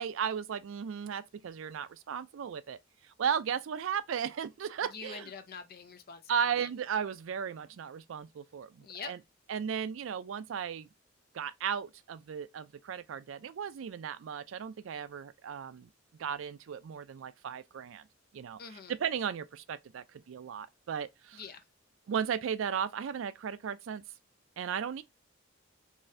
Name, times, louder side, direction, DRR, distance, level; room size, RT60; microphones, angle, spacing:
voice 1, 0.0-5.3 6.3-9.2 9.5-10.9 11.3-15.9 16.2-18.1 18.3-21.4 22.1-24.0 24.6-25.0, right 7 dB, 75° right, 0.4 m, -35 dB
voice 2, 4.9-6.7 8.8-9.1 18.6-18.9 21.3-21.6, left 5 dB, 50° left, 0.6 m, -45 dB
4.0 x 2.5 x 2.5 m
head